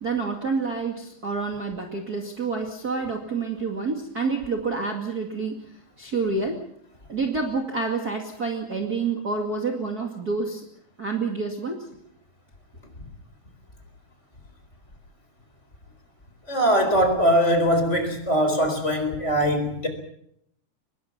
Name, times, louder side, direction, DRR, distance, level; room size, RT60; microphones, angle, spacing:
voice 1, 0.0-5.6 6.0-6.6 7.1-10.6 11.0-11.8, right 4 dB, 30° right, 0 dB, 2.4 m, -28 dB
voice 2, 16.5-19.9, equal, 20° left, 6 dB, 4.4 m, -21 dB
24.5 x 21.5 x 6.0 m, 0.71 s
omnidirectional pair, 3.6 m